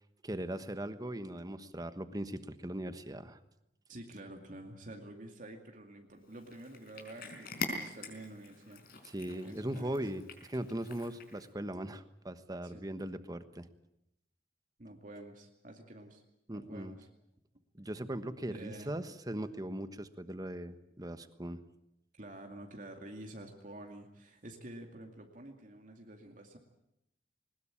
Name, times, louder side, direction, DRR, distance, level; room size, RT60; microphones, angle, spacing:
voice 1, 0.2-3.4 9.0-10.2 10.5-13.7 16.5-16.9 17.7-21.6, right 1 dB, 20° right, 11 dB, 1.2 m, -39 dB
voice 2, 3.9-9.1 9.4-10.0 12.6-12.8 14.8-16.2 16.5-17.1 18.5-18.9 22.2-26.6, right 1 dB, 45° right, 2 dB, 2.4 m, -49 dB
Cat, 6.3-11.5, left 3 dB, 55° left, 4.7 m, -44 dB
21.5 x 20.0 x 8.9 m, 0.84 s
head